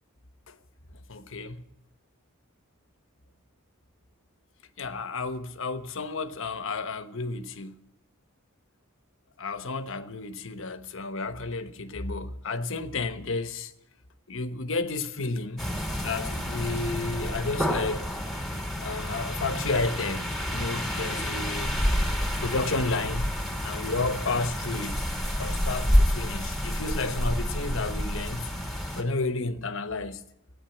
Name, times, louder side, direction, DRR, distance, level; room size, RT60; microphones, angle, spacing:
voice 1, 1.1-1.7 4.8-7.8 9.4-13.7 14.3-15.7 16.0-18.1 18.8-21.7 22.4-23.3 23.6-25.0 25.4-28.5 29.0-30.2, left 3 dB, 65° left, 1.1 m, -31 dB
sound 1, 15.6-29.0, equal, ahead, 2.6 m, -29 dB
16.5 x 9.8 x 8.9 m
head